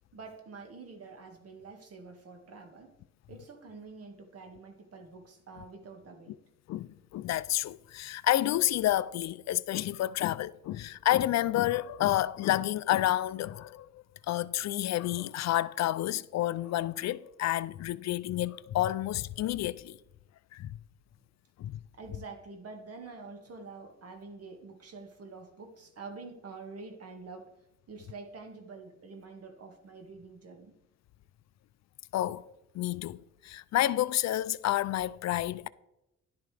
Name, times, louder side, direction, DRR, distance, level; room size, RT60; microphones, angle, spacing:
voice 1, 0.1-3.0 3.3-6.4 21.2-21.3 21.9-27.5 27.9-30.7, right 4 dB, 50° right, 2.0 m, -47 dB
voice 2, 6.7-20.0 20.5-20.7 21.6-21.8 32.1-32.4 32.7-33.2 33.4-35.7, left 14 dB, 60° left, 0.4 m, -29 dB
11.5 x 10.0 x 3.4 m
cardioid pair, 90°, 30 cm